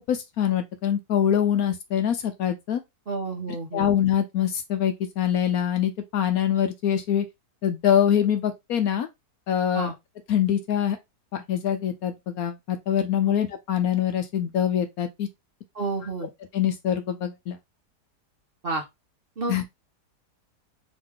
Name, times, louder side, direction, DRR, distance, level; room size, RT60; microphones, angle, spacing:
voice 1, 0.1-2.8 3.7-7.2 7.6-9.1 9.5-9.9 10.3-11.0 11.5-15.3 16.5-17.6 19.5-19.6, left 9 dB, 65° left, 1.0 m, -24 dB
voice 2, 3.1-3.9 9.7-9.9 15.7-16.3 18.6-18.8 19.4-19.6, right 3 dB, 40° right, 1.0 m, -30 dB
4.0 x 3.1 x 3.6 m
omnidirectional pair, 1.8 m